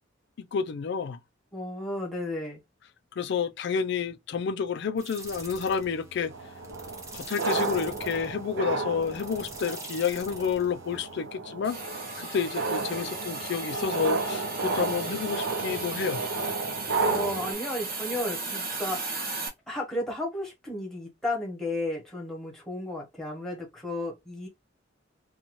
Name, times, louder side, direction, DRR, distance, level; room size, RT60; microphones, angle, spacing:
voice 1, 0.4-1.2 3.2-6.3 7.1-16.2, left 6 dB, 65° left, 0.4 m, -30 dB
voice 2, 1.5-2.6 17.0-19.3 19.7-24.5, left 1 dB, ahead, 1.1 m, -33 dB
sound 1, 5.0-11.3, right 2 dB, 15° right, 0.7 m, -45 dB
sound 2, 6.3-17.5, right 4 dB, 70° right, 0.6 m, -32 dB
Hiss, 11.6-19.5, right 3 dB, 50° right, 0.9 m, -36 dB
2.6 x 2.3 x 3.0 m
head